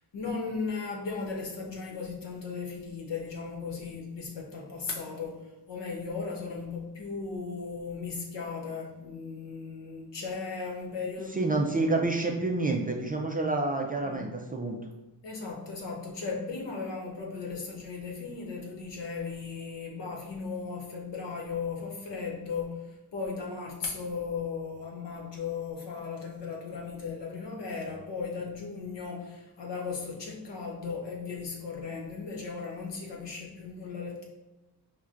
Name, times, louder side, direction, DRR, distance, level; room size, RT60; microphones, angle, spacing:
voice 1, 0.1-11.5 11.8-11.9 14.0-14.3 15.2-34.2, left 4 dB, 80° left, 0 dB, 0.9 m, -36 dB
voice 2, 11.3-14.8, right 2 dB, 25° right, 1 dB, 0.3 m, -28 dB
5.7 x 2.2 x 2.5 m, 1.0 s
wide cardioid pair, 105°, 41 cm